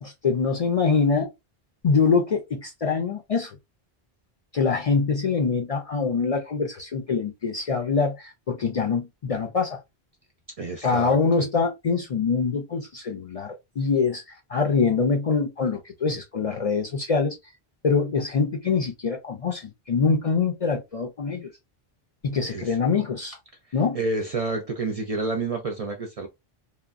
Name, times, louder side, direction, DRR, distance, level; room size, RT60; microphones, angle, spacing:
voice 1, 0.0-1.3 1.8-3.6 4.5-9.8 10.8-17.4 17.8-21.5 22.2-23.4 23.7-24.0, left 5 dB, 50° left, 0.5 m, -24 dB
voice 2, 10.6-11.5 22.4-22.8 23.9-26.3, right 3 dB, 50° right, 0.4 m, -29 dB
2.9 x 2.2 x 2.4 m
omnidirectional pair, 1.0 m